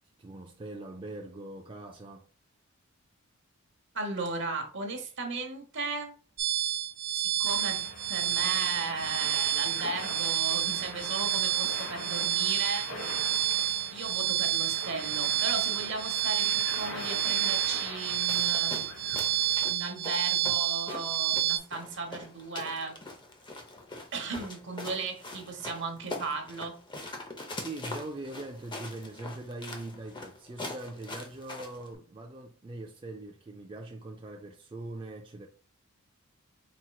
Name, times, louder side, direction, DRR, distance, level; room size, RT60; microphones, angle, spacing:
voice 1, 0.2-2.3 27.5-35.5, right 2 dB, 25° right, 0.3 m, -42 dB
voice 2, 3.9-6.1 7.1-7.8 8.1-12.9 13.9-19.2 19.7-23.0 24.1-26.8, right 3 dB, 55° right, 1.0 m, -36 dB
sound 1, 6.4-21.6, right 13 dB, 85° right, 0.7 m, -29 dB
sound 2, 7.4-19.6, left 1 dB, 65° left, 1.4 m, -42 dB
sound 3, 18.3-31.9, left 2 dB, 20° left, 0.7 m, -43 dB
4.3 x 4.2 x 2.3 m
head